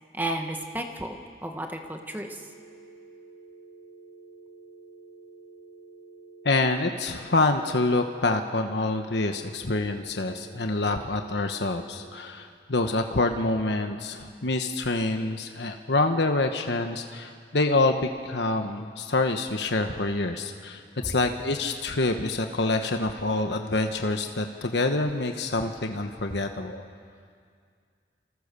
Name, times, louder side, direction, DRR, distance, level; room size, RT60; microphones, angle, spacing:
voice 1, 0.1-2.4, right 1 dB, 10° right, 3 dB, 1.6 m, -33 dB
sound 1, 2.1-12.1, right 3 dB, 55° left, 7.2 m, -50 dB
voice 2, 6.4-26.8, left 2 dB, 80° left, 5 dB, 1.3 m, -26 dB
27.5 x 25.5 x 7.0 m, 2.2 s
head